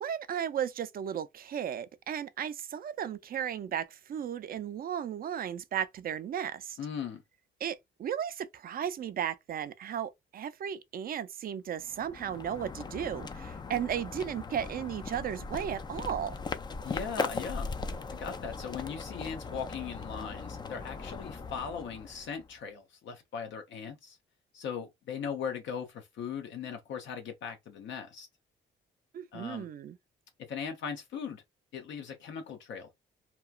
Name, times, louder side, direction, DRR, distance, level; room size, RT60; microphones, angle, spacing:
voice 1, 0.0-6.8 7.6-16.3 29.1-30.0, right 9 dB, 50° right, 0.4 m, -35 dB
voice 2, 6.8-7.2 16.8-17.7 18.0-24.2 24.5-28.3 29.3-29.7 30.5-31.4 31.7-32.9, left 7 dB, 70° left, 0.6 m, -39 dB
sound 1, 11.8-22.5, left 4 dB, 20° left, 0.3 m, -39 dB
2.9 x 2.3 x 2.3 m
cardioid pair, 90°, 20 cm